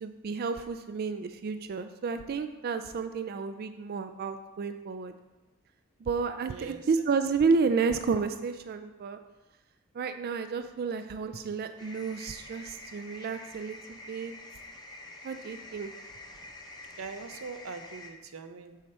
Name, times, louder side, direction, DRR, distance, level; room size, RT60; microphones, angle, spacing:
voice 1, 0.0-5.1 6.0-9.2 9.9-14.3 15.2-15.9, right 5 dB, 45° right, 9 dB, 0.3 m, -31 dB
voice 2, 6.5-6.9 17.0-18.8, right 4 dB, 90° right, 8 dB, 0.7 m, -42 dB
sound 1, 11.8-18.1, left 2 dB, 20° left, 0.9 m, -47 dB
7.3 x 6.7 x 4.3 m, 1.1 s
head